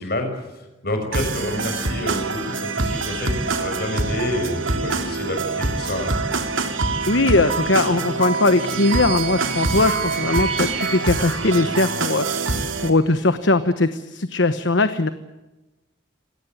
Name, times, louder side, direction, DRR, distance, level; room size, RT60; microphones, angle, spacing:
voice 1, 0.0-6.2, left 1 dB, 50° left, 6 dB, 6.2 m, -28 dB
sound 1, 1.1-12.9, right 3 dB, 80° right, 2.9 m, -25 dB
voice 2, 7.1-12.4 12.8-15.1, left 2 dB, 65° left, 11 dB, 1.1 m, -20 dB
sound 2, 8.0-12.3, right 6 dB, 35° right, 2.3 m, -33 dB
27.0 x 18.0 x 9.3 m, 1.1 s
head